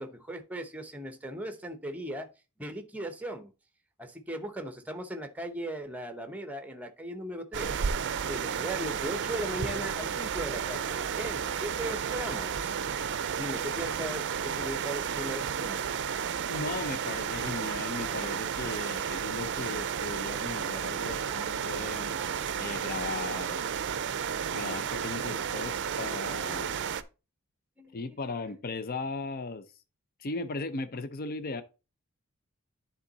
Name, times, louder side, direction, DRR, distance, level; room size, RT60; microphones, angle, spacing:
voice 1, 0.0-2.3 2.6-3.5 4.0-7.9 8.3-12.8 13.3-15.9 21.3-22.5 27.8-28.2, right 1 dB, 5° right, 0.8 m, -38 dB
sound 1, 7.5-27.0, right 7 dB, 55° right, 0.5 m, -32 dB
voice 2, 16.5-22.2 22.6-23.6 24.5-26.8 27.9-29.6 30.2-31.6, left 3 dB, 45° left, 0.5 m, -37 dB
10.0 x 3.8 x 4.0 m
head